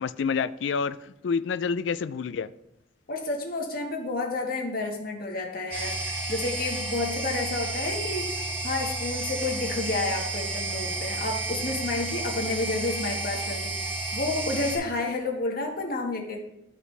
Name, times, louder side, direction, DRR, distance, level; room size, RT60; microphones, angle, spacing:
voice 1, 0.0-2.5, left 5 dB, 80° left, 14 dB, 0.4 m, -28 dB
voice 2, 3.1-16.4, left 3 dB, 50° left, 1 dB, 1.5 m, -30 dB
sound 1, 5.7-14.8, right 2 dB, 80° right, 3.3 m, -31 dB
13.0 x 4.8 x 3.3 m, 0.84 s
head